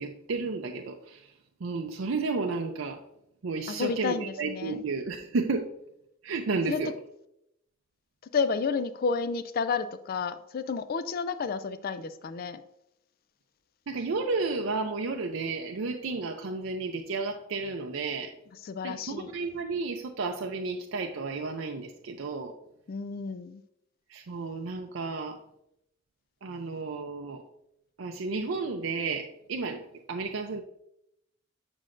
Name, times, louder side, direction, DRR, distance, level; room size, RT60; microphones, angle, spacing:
voice 1, 0.0-1.3 1.6-3.0 3.4-5.7 6.2-6.9 13.9-18.3 18.8-22.5 24.1-25.4 26.4-27.4 28.0-30.6, right 4 dB, 75° right, 3 dB, 0.5 m, -32 dB
voice 2, 3.7-4.8 6.7-6.8 8.3-12.6 18.6-19.3 22.9-23.6, left 5 dB, 45° left, 12 dB, 0.3 m, -31 dB
7.5 x 6.2 x 2.5 m, 0.80 s
head